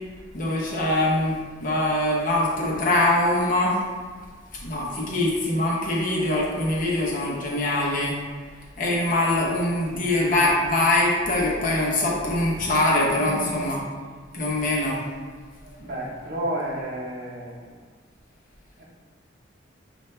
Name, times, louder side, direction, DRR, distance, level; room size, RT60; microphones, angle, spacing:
voice 1, 0.3-3.8 4.6-8.2 8.8-13.8 14.3-15.0, left 1 dB, 45° left, -5 dB, 1.0 m, -23 dB
voice 2, 13.2-13.6 15.6-17.8 18.8-18.9, right 1 dB, 50° right, -5 dB, 1.1 m, -32 dB
5.5 x 2.7 x 3.3 m, 1.5 s
head